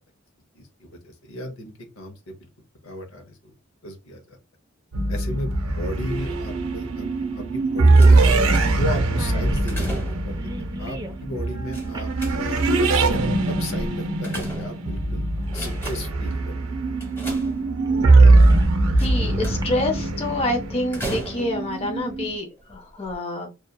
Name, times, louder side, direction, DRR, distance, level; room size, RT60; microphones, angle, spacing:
voice 1, 0.5-2.4 2.8-3.4 3.8-4.4 5.1-8.4 8.7-10.4 10.8-12.1 12.4-12.6 13.0-15.2 15.5-16.5, left 1 dB, 80° left, 5 dB, 0.7 m, -34 dB
sound 1, 4.9-22.4, right 2 dB, 85° right, 0.5 m, -21 dB
sound 2, 5.3-5.4 7.2-7.3 7.6-7.7 8.2-8.5 8.7-8.8 9.0-11.2 11.9-12.2 13.1-13.3 14.3-14.6 15.4-15.5 15.8-16.0 17.3-17.4 17.9-18.8 19.4-19.6, right 2 dB, 20° right, 0.3 m, -39 dB
sound 3, 8.0-9.0 9.4-10.4 11.7-12.7 13.8-15.0 15.4-16.2 17.0-18.0 19.0-19.8 20.9-21.8 22.6-22.7 23.1-23.2, right 1 dB, 10° left, 0.9 m, -35 dB
voice 2, 18.9-23.5, left 1 dB, 30° left, 4 dB, 0.5 m, -27 dB
2.7 x 2.3 x 2.2 m, 0.26 s
head